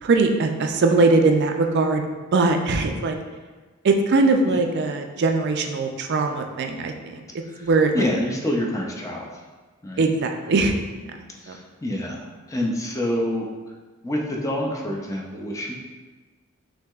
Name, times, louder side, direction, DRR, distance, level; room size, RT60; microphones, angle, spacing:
voice 1, 0.0-2.0 2.3-3.2 3.8-7.2 7.6-8.1 10.0-10.7 11.5-11.6, right 3 dB, 50° right, 4 dB, 0.4 m, -20 dB
voice 2, 7.9-9.3 9.8-10.0 11.4-13.5 14.0-15.7, left 1 dB, 15° left, -1 dB, 0.5 m, -27 dB
5.9 x 2.7 x 2.3 m, 1.3 s
head